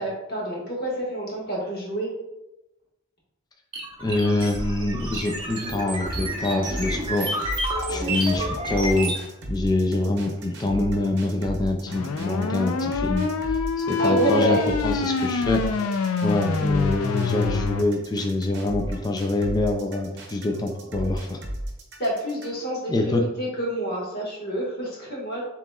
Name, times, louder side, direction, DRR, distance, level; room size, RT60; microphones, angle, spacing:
voice 1, 0.0-2.1 7.9-8.2 14.0-14.7 22.0-25.4, right 1 dB, 45° left, -4 dB, 1.5 m, -27 dB
sound 1, 3.7-9.2, right 1 dB, 25° right, 0.9 m, -29 dB
voice 2, 4.0-7.4 7.9-9.2 9.5-15.6 15.9-21.4 22.9-23.2, left 2 dB, 20° left, 2 dB, 0.3 m, -25 dB
sound 2, 6.7-22.7, right 1 dB, 55° right, 0.8 m, -35 dB
sound 3, 11.9-17.8, left 5 dB, 85° left, 0.4 m, -26 dB
7.2 x 3.0 x 2.3 m, 0.96 s
head